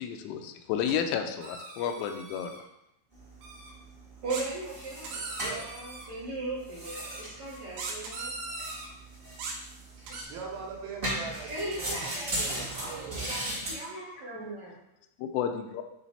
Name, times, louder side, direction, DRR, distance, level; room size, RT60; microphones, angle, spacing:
voice 1, 0.0-2.5 15.2-15.8, left 8 dB, 85° left, 6 dB, 3.2 m, -31 dB
sound 1, 0.9-1.0 1.4-2.6 3.4-3.7 4.3-6.1 6.9-7.2 7.8-8.9 9.4-10.2, right 3 dB, 70° right, 3.1 m, -40 dB
sound 2, 3.1-13.7, right 1 dB, 30° right, 1.0 m, -38 dB
voice 2, 4.2-8.4 10.0-10.2 11.3-14.7, right 2 dB, 45° right, -7 dB, 2.7 m, -38 dB
voice 3, 5.4-5.7 10.3-13.3, right 6 dB, 85° right, 0 dB, 3.7 m, -41 dB
9.9 x 3.3 x 4.2 m, 0.83 s
omnidirectional pair, 5.7 m